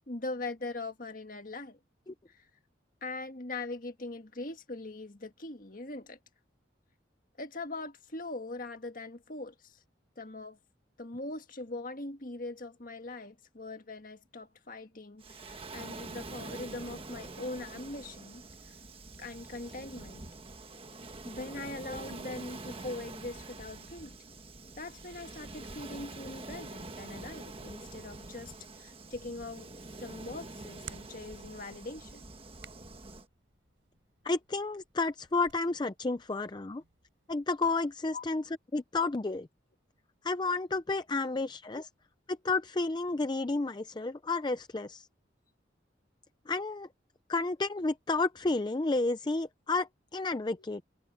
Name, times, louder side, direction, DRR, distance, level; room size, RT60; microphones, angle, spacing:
voice 1, 0.1-1.8 2.3-2.5 3.0-6.2 7.4-9.8 10.2-10.6 11.0-18.8 19.2-20.2 21.2-24.1 24.8-29.7 30.0-32.2 38.1-38.2 41.3-41.4, left 2 dB, 45° left, 1.8 m, -41 dB
Waves surf, 15.2-33.3, right 2 dB, 30° right, 1.4 m, -46 dB
Hands, 29.4-37.8, right 7 dB, 80° right, 7.2 m, -57 dB
voice 2, 34.2-36.8 37.3-38.4 38.7-39.5 40.2-41.9 42.3-45.1 46.5-46.9 47.3-50.8, left 3 dB, 25° left, 0.5 m, -31 dB
head